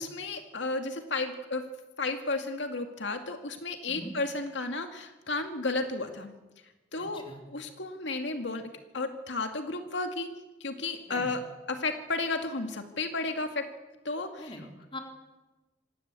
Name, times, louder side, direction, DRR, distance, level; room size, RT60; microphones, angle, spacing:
voice 1, 0.0-1.6 2.0-6.3 6.9-10.3 10.6-11.4 11.7-13.7 14.0-14.5, left 3 dB, 75° left, 6 dB, 2.2 m, -33 dB
voice 2, 7.0-7.4 11.1-11.3 14.4-15.0, left 1 dB, 25° left, 3 dB, 3.7 m, -43 dB
26.0 x 19.5 x 8.3 m, 1.1 s
head